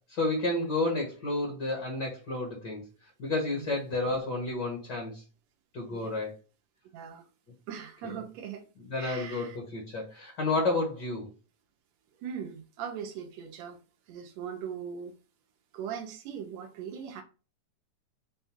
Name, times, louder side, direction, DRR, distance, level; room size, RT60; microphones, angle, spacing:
voice 1, 0.0-2.8 3.2-5.2 5.7-6.3 8.0-8.1 8.9-11.3, left 2 dB, 50° left, 1.3 m, -31 dB
voice 2, 6.9-7.3 7.7-8.7 9.0-9.6 12.2-13.8 14.1-15.2 15.7-17.2, right 8 dB, 75° right, 1.6 m, -40 dB
5.4 x 2.2 x 4.3 m
omnidirectional pair, 3.6 m